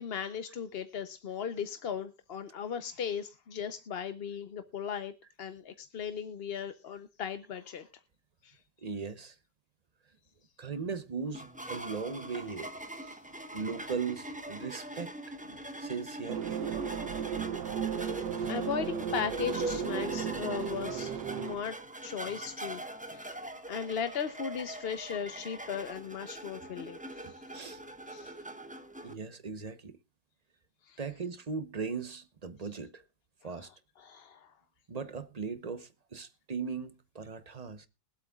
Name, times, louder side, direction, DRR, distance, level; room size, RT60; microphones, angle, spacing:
voice 1, 0.0-5.1 5.4-7.9 8.4-8.6 17.9-18.1 18.5-21.8 22.0-22.8 23.1-23.3 23.7-27.4 28.1-28.3 30.9-31.0 34.0-34.5, left 7 dB, 50° left, 0.8 m, -37 dB
voice 2, 8.8-9.4 10.6-12.8 13.5-16.6 26.8-26.9 27.2-27.8 28.2-28.3 29.0-30.0 31.0-33.0 33.4-33.7 34.9-37.9, right 5 dB, 35° right, 0.7 m, -38 dB
sound 1, 11.3-29.1, right 1 dB, 5° right, 0.9 m, -42 dB
sound 2, 16.3-21.6, right 8 dB, 85° right, 1.4 m, -35 dB
23.5 x 8.2 x 2.3 m
omnidirectional pair, 1.7 m